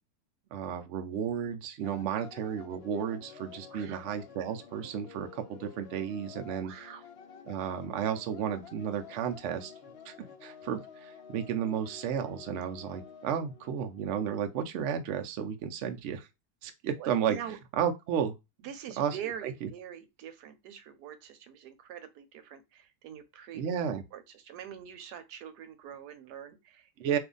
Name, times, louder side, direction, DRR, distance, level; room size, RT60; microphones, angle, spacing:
voice 1, 0.5-6.7 7.5-9.7 10.1-16.3 16.6-17.4 17.8-18.3 19.0-19.2 19.4-19.7 23.5-24.0 27.0-27.2, right 8 dB, 70° right, 0.7 m, -33 dB
sound 1, 1.8-14.6, left 6 dB, 60° left, 0.7 m, -51 dB
voice 2, 3.7-4.1 6.6-7.0 17.0-17.6 18.6-27.2, right 9 dB, 90° right, 1.2 m, -44 dB
2.7 x 2.5 x 3.7 m
omnidirectional pair, 1.7 m